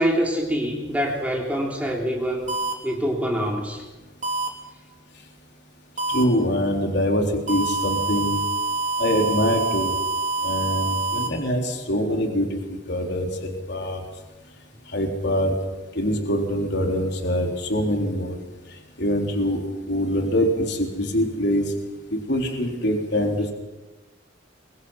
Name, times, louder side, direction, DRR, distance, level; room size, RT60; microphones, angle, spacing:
voice 1, 0.0-2.6 2.8-3.8, equal, 10° right, -1 dB, 3.4 m, -25 dB
sound 1, 2.5-2.7 4.2-4.5 6.0-6.2 7.5-11.3, right 2 dB, 40° right, 3.4 m, -26 dB
voice 2, 6.1-8.4 9.0-9.9 10.4-14.0 14.9-15.5 15.9-18.4 19.0-19.6 19.9-21.6 22.1-23.5, equal, 60° left, 2 dB, 3.9 m, -24 dB
28.0 x 24.0 x 5.7 m, 1.1 s
head